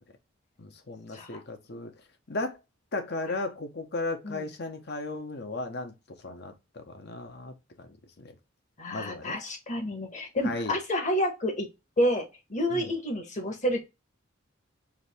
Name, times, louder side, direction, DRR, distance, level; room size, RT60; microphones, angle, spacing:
voice 1, 0.6-1.9 2.3-2.6 2.9-8.3 8.9-9.4 10.4-10.8 12.7-12.9, left 2 dB, 55° left, 0.9 m, -36 dB
voice 2, 8.8-11.7 12.0-13.8, equal, 35° left, 1.2 m, -29 dB
4.8 x 2.7 x 3.4 m
head